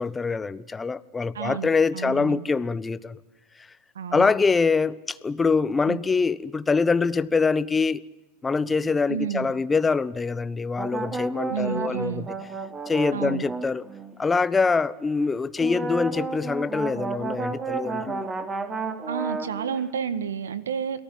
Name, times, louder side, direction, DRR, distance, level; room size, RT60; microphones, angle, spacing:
voice 1, 0.0-3.2 4.1-8.0 8.4-12.3 12.9-13.8 14.2-18.3, left 4 dB, 15° left, 1.1 m, -24 dB
voice 2, 1.3-2.4 3.9-4.3 5.9-6.0 9.1-9.5 11.5-12.3 13.1-13.5 19.1-21.0, right 7 dB, 85° right, 1.7 m, -30 dB
sound 1, 10.8-14.1 15.6-19.8, right 4 dB, 25° right, 3.1 m, -32 dB
29.0 x 19.0 x 8.8 m
hypercardioid pair, 100°, 0 cm